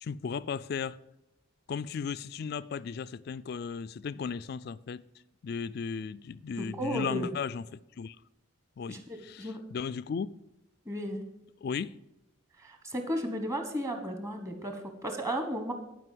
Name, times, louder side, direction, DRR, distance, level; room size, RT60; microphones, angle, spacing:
voice 1, 0.0-1.0 1.7-5.0 5.4-8.2 8.8-10.4 11.6-11.9, left 6 dB, 50° left, 0.3 m, -36 dB
voice 2, 6.6-7.3 8.9-9.6 10.8-11.3 12.6-15.7, equal, 15° right, 1.2 m, -34 dB
11.0 x 5.1 x 7.6 m
head